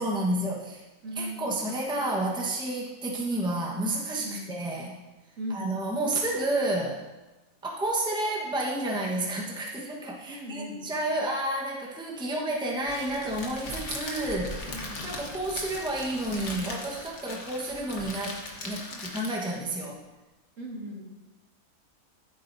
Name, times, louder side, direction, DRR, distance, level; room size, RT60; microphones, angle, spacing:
voice 1, 0.0-0.8 1.2-5.0 5.5-7.0 7.6-20.0, right 1 dB, 5° right, -2 dB, 1.1 m, -30 dB
voice 2, 1.0-1.5 4.2-4.5 5.4-5.7 10.3-10.8 14.7-15.2 18.9-19.0 20.6-21.0, equal, 60° right, -2 dB, 2.2 m, -38 dB
Crackle, 12.9-19.6, left 2 dB, 55° left, 1.6 m, -39 dB
14.0 x 8.2 x 2.7 m, 1.1 s
omnidirectional pair, 1.5 m